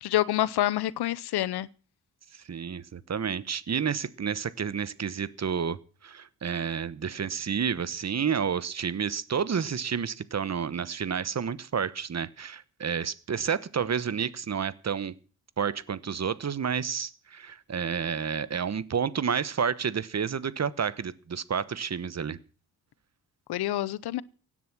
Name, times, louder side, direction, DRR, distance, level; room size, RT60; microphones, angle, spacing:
voice 1, 0.0-1.7 23.5-24.2, left 13 dB, 90° left, 0.8 m, -27 dB
voice 2, 2.5-15.2 15.6-22.4, right 7 dB, 45° right, 1.1 m, -30 dB
16.5 x 10.5 x 6.1 m
cardioid pair, 85°, 37 cm